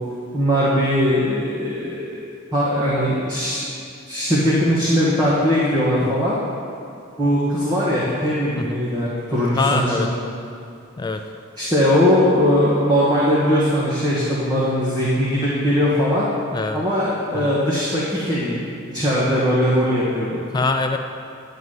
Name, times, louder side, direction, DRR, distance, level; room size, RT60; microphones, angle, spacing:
voice 1, 0.3-2.0 2.5-3.6 4.1-6.3 7.2-10.1 11.6-16.3 16.7-18.6 18.9-20.4, equal, 20° right, -8 dB, 1.5 m, -20 dB
voice 2, 9.6-10.1 11.0-11.2 16.5-16.8 17.3-17.5 20.5-21.0, left 3 dB, 20° left, 6 dB, 0.3 m, -23 dB
10.5 x 4.0 x 7.7 m, 2.4 s
head